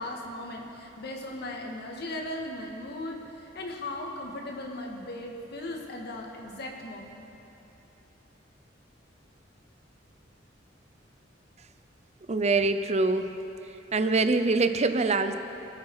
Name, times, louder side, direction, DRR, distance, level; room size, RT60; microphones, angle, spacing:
voice 1, 0.0-7.3, left 1 dB, 60° left, 1 dB, 1.9 m, -37 dB
voice 2, 12.3-13.3 13.9-15.3, right 3 dB, 35° right, 9 dB, 0.7 m, -24 dB
25.0 x 8.5 x 4.9 m, 3.0 s
head